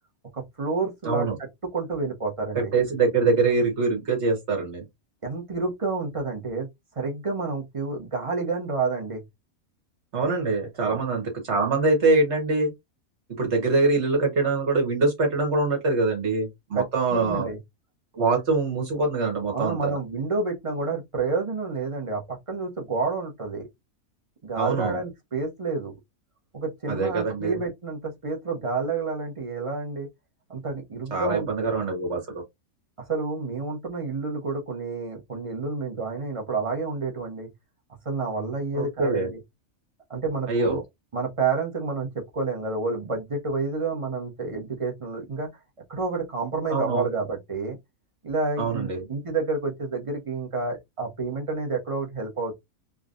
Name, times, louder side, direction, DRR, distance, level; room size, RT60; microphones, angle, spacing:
voice 1, 0.3-1.3 1.7-2.7 5.2-6.7 6.9-9.2 10.8-11.0 16.7-16.8 17.1-17.6 19.5-23.7 24.4-25.9 26.5-30.1 30.5-31.7 33.1-37.5 38.0-39.4 40.1-40.8 41.1-45.5 45.9-47.8 48.2-52.5, right 3 dB, 25° right, 1.1 m, -29 dB
voice 2, 1.1-1.4 2.6-4.9 10.1-12.7 13.4-17.5 18.1-20.0 24.6-25.0 26.9-27.6 31.1-32.4 38.7-39.3 40.5-40.8 46.7-47.1 48.6-49.1, right 3 dB, 55° right, 1.8 m, -24 dB
3.7 x 3.1 x 2.5 m
omnidirectional pair, 1.4 m